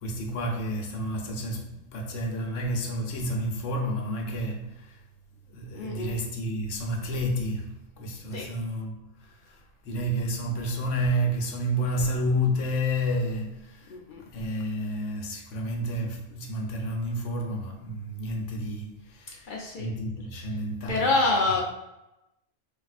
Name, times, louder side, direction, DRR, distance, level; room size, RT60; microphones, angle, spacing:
voice 1, 0.0-4.9 5.5-7.7 8.0-9.6 9.8-21.1, equal, 85° left, 1.0 m, -30 dB
voice 2, 5.7-6.2 8.3-8.5 13.9-14.2 19.5-19.9 20.9-21.6, left 3 dB, 60° left, 0.5 m, -26 dB
3.4 x 2.3 x 2.4 m
omnidirectional pair, 1.2 m